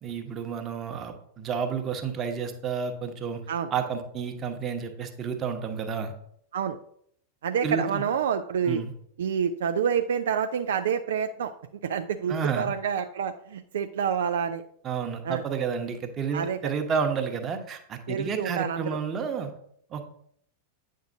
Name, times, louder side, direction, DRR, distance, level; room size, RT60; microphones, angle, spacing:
voice 1, 0.0-3.4 3.7-6.1 7.6-8.0 8.6-8.9 12.3-12.7 14.8-19.5 19.9-20.0, right 6 dB, 25° right, 6 dB, 1.0 m, -30 dB
voice 2, 7.4-8.8 9.2-11.5 11.8-14.6 15.2-15.4 16.3-16.6 18.1-19.0, right 7 dB, 60° right, 8 dB, 0.3 m, -28 dB
8.9 x 6.3 x 2.6 m, 0.67 s
figure-of-eight pair, 90°, 0 cm